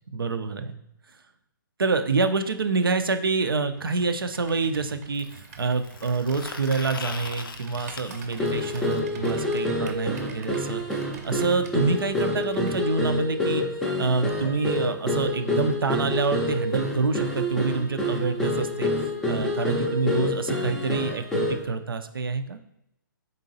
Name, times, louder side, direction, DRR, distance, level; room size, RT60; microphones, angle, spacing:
voice 1, 0.1-0.8 1.8-13.6 14.0-18.9 19.3-22.6, right 4 dB, 85° right, 8 dB, 0.4 m, -27 dB
Computer keyboard, 3.7-12.8, right 5 dB, 45° right, 0.6 m, -46 dB
sound 1, 5.1-9.0 10.9-11.0 11.3-11.4 11.7-11.8 12.7-12.8, left 5 dB, 80° left, 0.4 m, -41 dB
sound 2, 8.4-21.7, left 1 dB, 5° left, 0.4 m, -27 dB
3.9 x 3.7 x 2.6 m, 0.80 s
figure-of-eight pair, 130°, 12 cm